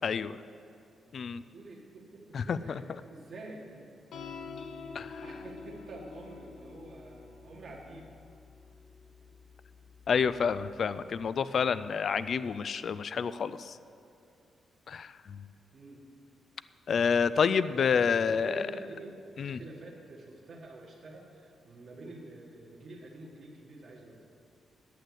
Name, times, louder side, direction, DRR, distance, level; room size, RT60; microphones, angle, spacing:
voice 1, 0.0-0.4 1.1-1.4 2.3-2.7 4.9-5.2 10.1-13.8 14.9-15.4 16.9-18.7 19.4-19.6, left 6 dB, 45° left, 15 dB, 0.3 m, -29 dB
voice 2, 1.3-4.2 5.2-8.1 15.7-16.0 18.2-24.2, right 2 dB, 45° right, -3 dB, 1.6 m, -47 dB
sound 1, 4.1-10.8, left 4 dB, 65° left, 0.9 m, -47 dB
9.1 x 7.9 x 7.9 m, 2.6 s
wide cardioid pair, 165°, 0 cm